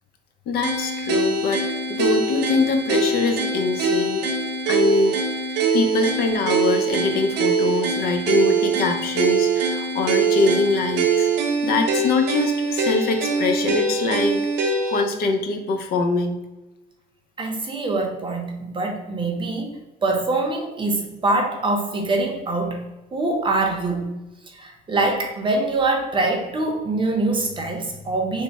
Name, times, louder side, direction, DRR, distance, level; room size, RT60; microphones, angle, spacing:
voice 1, 0.5-1.6 1.9-4.2 4.7-5.2 5.5-11.3 11.6-14.5 14.9-16.4, left 3 dB, 65° left, 6 dB, 0.6 m, -23 dB
sound 1, 0.6-15.1, right 4 dB, 80° right, 0.6 m, -23 dB
voice 2, 17.4-19.7 20.0-22.8 23.1-24.1 24.5-28.4, right 2 dB, 30° right, 2 dB, 0.7 m, -24 dB
3.3 x 2.1 x 4.0 m, 1.0 s
cardioid pair, 110°, 17 cm